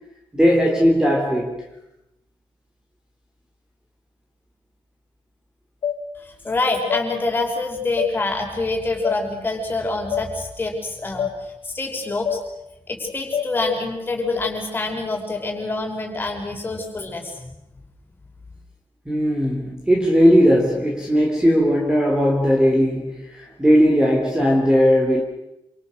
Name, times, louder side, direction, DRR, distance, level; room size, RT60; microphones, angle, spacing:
voice 1, 0.3-1.6 19.1-25.2, equal, 10° right, 3.5 m, -18 dB
sound 1, 5.8-6.0 6.9-7.1 8.0-8.1 9.0-9.2 10.1-10.3 11.2-11.3 12.3-12.4 13.3-13.5, left 9 dB, 60° left, 3.2 m, -24 dB
voice 2, 6.2-12.4 12.9-17.4, left 3 dB, 20° left, 5.7 m, -26 dB
28.0 x 27.5 x 6.6 m
wide cardioid pair, 175°, 9 cm